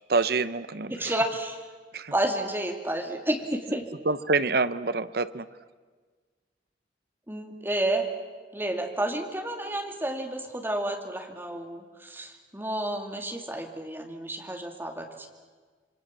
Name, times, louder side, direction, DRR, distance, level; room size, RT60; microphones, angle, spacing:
voice 1, 0.1-1.2 1.9-2.1 4.0-5.5, right 3 dB, 55° right, 14 dB, 0.9 m, -26 dB
voice 2, 0.9-1.7 2.1-3.8 7.3-8.1 8.5-15.3, right 1 dB, 10° right, 3 dB, 2.7 m, -30 dB
27.0 x 24.0 x 7.6 m, 1.4 s
head